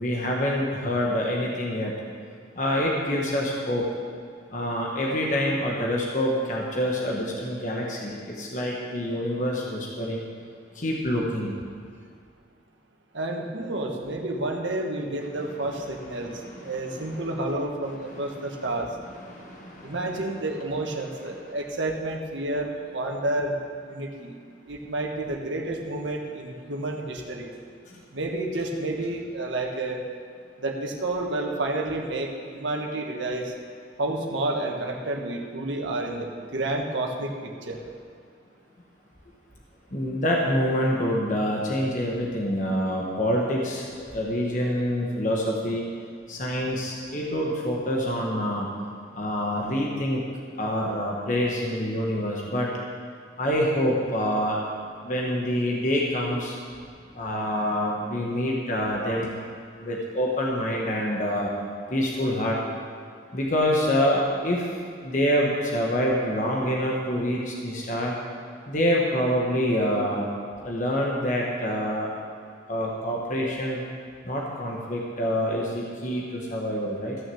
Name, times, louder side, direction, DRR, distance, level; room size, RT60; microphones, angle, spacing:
voice 1, 0.0-1.9 2.6-3.9 4.5-10.3 10.7-11.5 15.4-15.5 15.9-17.1 18.2-18.6 19.2-20.0 27.9-28.0 39.9-45.8 46.3-48.7 49.1-50.2 50.6-52.7 53.4-54.6 55.0-56.6 57.1-59.3 59.8-61.5 61.9-62.6 63.3-64.7 65.0-68.1 68.7-70.3 70.6-72.1 72.7-73.8 74.2-77.2, equal, 40° left, -2 dB, 1.4 m, -26 dB
voice 2, 13.1-18.9 19.8-23.5 23.8-24.4 24.6-27.5 28.1-30.0 30.6-33.5 34.0-37.8, right 2 dB, 80° right, 1 dB, 1.5 m, -30 dB
15.0 x 6.5 x 7.0 m, 2.2 s
head